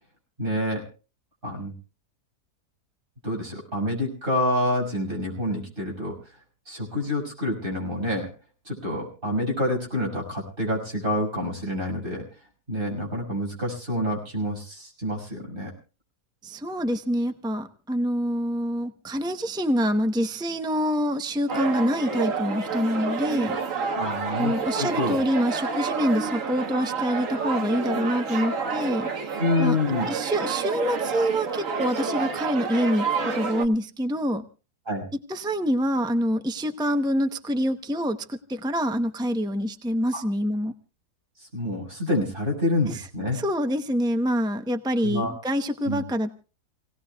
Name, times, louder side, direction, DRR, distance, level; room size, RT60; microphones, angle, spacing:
voice 1, 0.4-0.8 1.4-1.7 3.2-6.2 6.7-8.3 8.6-12.2 12.7-15.7 24.0-25.2 29.4-30.1 34.9-35.0 40.1-40.2 41.5-43.4 45.0-45.3 45.8-46.0, left 1 dB, 30° right, -1 dB, 6.4 m, -27 dB
voice 2, 16.4-23.9 24.4-29.8 30.1-34.5 35.3-40.7 42.9-43.1 43.3-46.3, equal, 5° right, 7 dB, 0.4 m, -26 dB
sound 1, 21.5-33.7, right 5 dB, 55° right, 1.6 m, -29 dB
28.5 x 18.0 x 2.3 m, 0.34 s
omnidirectional pair, 1.7 m